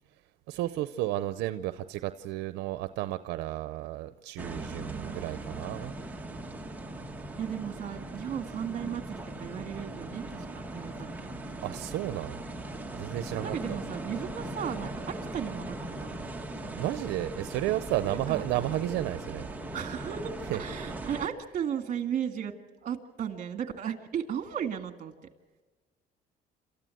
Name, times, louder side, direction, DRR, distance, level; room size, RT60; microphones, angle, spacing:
voice 1, 0.5-5.9 11.6-12.4 12.9-13.8 16.7-19.5 20.5-20.6, right 15 dB, 85° right, 12 dB, 0.7 m, -32 dB
sound 1, 4.4-21.3, right 1 dB, 10° right, 1.6 m, -39 dB
voice 2, 4.7-5.7 7.4-11.3 13.4-16.2 18.1-18.4 19.7-20.3 20.6-22.5 22.8-25.1, right 8 dB, 50° right, 6 dB, 2.0 m, -35 dB
28.0 x 14.0 x 7.8 m, 1.3 s
cardioid pair, 110°, 17 cm